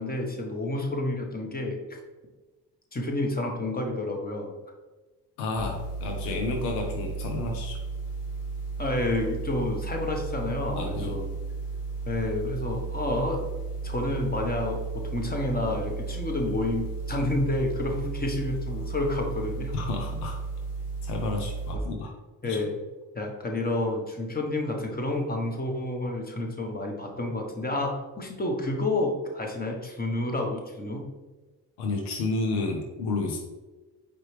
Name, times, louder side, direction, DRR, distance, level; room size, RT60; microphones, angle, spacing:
voice 1, 0.0-1.8 2.9-4.5 8.8-11.3 12.0-13.5 13.8-19.7 21.7-21.8 22.4-22.8 23.1-31.1, left 2 dB, 20° left, 1 dB, 1.1 m, -29 dB
voice 2, 5.4-7.8 10.7-11.2 19.7-20.4 21.0-22.1 22.4-22.6 31.8-33.4, left 3 dB, 85° left, 2 dB, 0.7 m, -31 dB
sound 1, 5.6-21.7, right 4 dB, 60° left, 1.3 m, -34 dB
4.5 x 3.3 x 3.2 m, 1.2 s
hypercardioid pair, 60°, 46 cm